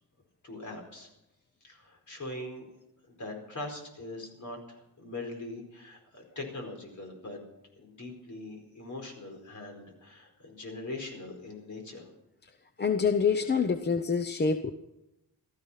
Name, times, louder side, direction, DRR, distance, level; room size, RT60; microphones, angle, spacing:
voice 1, 0.4-1.1 1.6-2.6 3.1-7.4 7.8-12.1, left 2 dB, 50° left, 3 dB, 4.7 m, -41 dB
voice 2, 12.8-14.7, left 5 dB, 25° left, 8 dB, 0.7 m, -26 dB
16.0 x 13.5 x 5.7 m, 0.89 s
wide cardioid pair, 135°, 39 cm